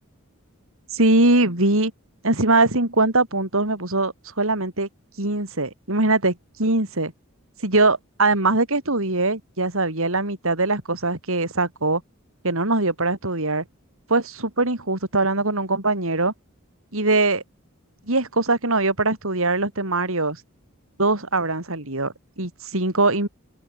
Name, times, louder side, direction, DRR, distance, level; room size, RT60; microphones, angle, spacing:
voice 1, 0.9-1.9 2.2-4.9 5.2-7.1 7.6-12.0 12.4-13.6 14.1-16.3 16.9-17.4 18.1-20.4 21.0-23.3, right 2 dB, 70° right, 4.8 m, -22 dB
open air
head